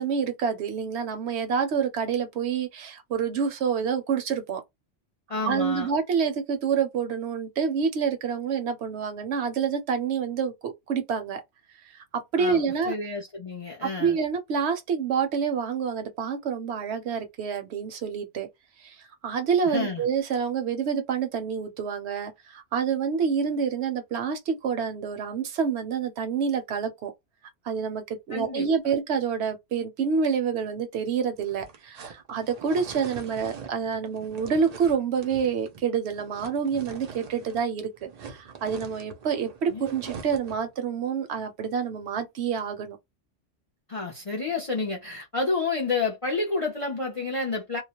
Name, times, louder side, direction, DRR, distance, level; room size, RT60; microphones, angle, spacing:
voice 1, 0.0-4.6 5.5-11.4 12.1-12.9 13.8-18.5 18.8-27.1 27.6-43.0, right 6 dB, 70° right, 0.8 m, -27 dB
voice 2, 5.3-5.9 12.4-12.6 12.9-14.2 19.7-20.0 28.3-28.7 39.7-39.9 43.9-47.8, left 3 dB, 45° left, 0.4 m, -29 dB
sound 1, 31.4-37.7 38.0-40.7, right 5 dB, 55° right, 0.4 m, -43 dB
2.3 x 2.0 x 2.8 m
omnidirectional pair, 1.2 m